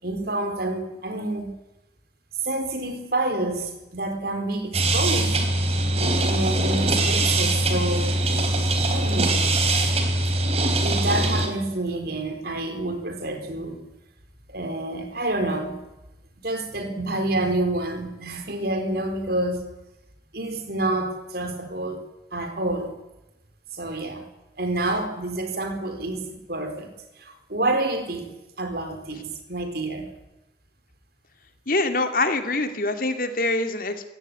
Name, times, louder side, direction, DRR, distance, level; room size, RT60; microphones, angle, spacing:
voice 1, 0.0-1.6 2.4-5.4 6.2-8.2 8.9-9.5 10.8-13.8 14.5-15.8 16.4-19.7 20.3-22.0 22.3-22.9 23.7-24.3 24.6-30.1, right 2 dB, 55° right, 7 dB, 4.3 m, -28 dB
sound 1, 4.7-11.5, right 2 dB, 35° right, 3.6 m, -22 dB
voice 2, 31.7-34.1, left 2 dB, 50° left, 7 dB, 2.7 m, -24 dB
25.0 x 17.0 x 9.7 m, 0.99 s
head